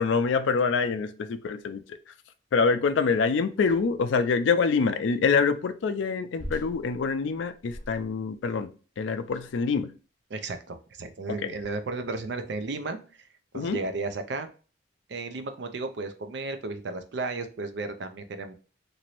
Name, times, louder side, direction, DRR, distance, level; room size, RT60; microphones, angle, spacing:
voice 1, 0.0-2.0 2.5-8.7 9.0-9.9 11.3-11.5 13.5-13.8, left 5 dB, 75° left, 0.4 m, -25 dB
Heavy Bunker's Door, 3.6-4.1 6.4-8.3 9.2-9.7 10.6-10.7 11.6-12.0, equal, 40° left, 0.7 m, -43 dB
voice 2, 10.3-13.2 13.5-14.5 15.1-18.5, right 3 dB, 65° right, 0.4 m, -34 dB
2.9 x 2.6 x 3.0 m
head